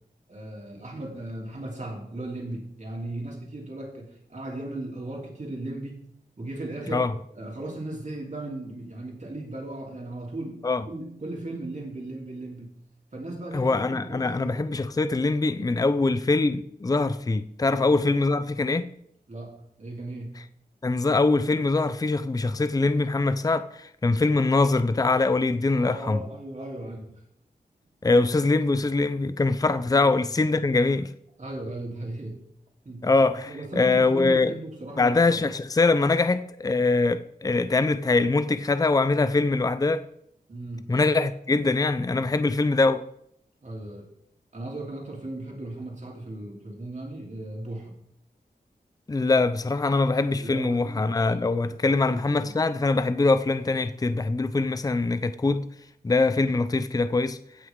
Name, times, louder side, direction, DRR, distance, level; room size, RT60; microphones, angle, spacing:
voice 1, 0.3-6.0 6.4-7.1 7.3-12.7 13.1-14.6 17.7-18.2 19.3-20.3 25.8-27.1 28.1-28.3 29.9-30.1 31.4-32.4 32.8-33.1 33.5-35.5 40.5-40.9 43.6-44.1 44.5-47.9 50.3-51.4 51.7-52.5, right 2 dB, 45° right, 3.1 m, -37 dB
voice 2, 13.5-18.9 20.8-26.2 28.0-31.1 33.0-34.5 35.0-40.0 40.9-43.0 49.1-55.7 56.0-57.4, left 3 dB, 20° left, 0.5 m, -23 dB
16.0 x 6.1 x 3.7 m
wide cardioid pair, 90°, 17 cm